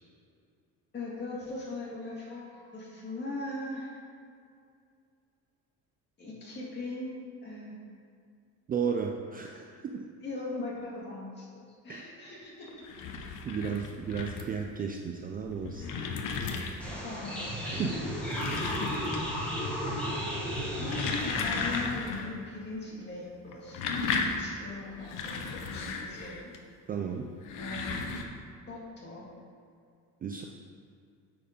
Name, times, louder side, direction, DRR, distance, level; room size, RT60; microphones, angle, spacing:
voice 1, 0.9-3.9 6.2-7.9 10.2-11.5 11.8-12.7 15.8-16.0 17.0-17.5 19.9-20.1 20.8-23.8 24.3-26.5 27.6-27.9 28.7-29.3, left 2 dB, 30° left, -5 dB, 2.0 m, -39 dB
voice 2, 8.7-10.1 11.9-12.0 13.4-15.9 17.6-18.9 26.9-27.3 30.2-30.4, right 6 dB, 30° right, 2 dB, 0.3 m, -34 dB
sound 1, 12.7-14.6 15.3-17.0 18.0-19.5 19.7-20.2 20.6-22.3 22.6-22.7 23.5-26.6 27.3-28.2, left 4 dB, 75° left, 0.9 m, -35 dB
sound 2, 16.8-21.8, equal, 5° left, 1.3 m, -34 dB
8.4 x 4.7 x 5.2 m, 2.3 s
cardioid pair, 160°, 33 cm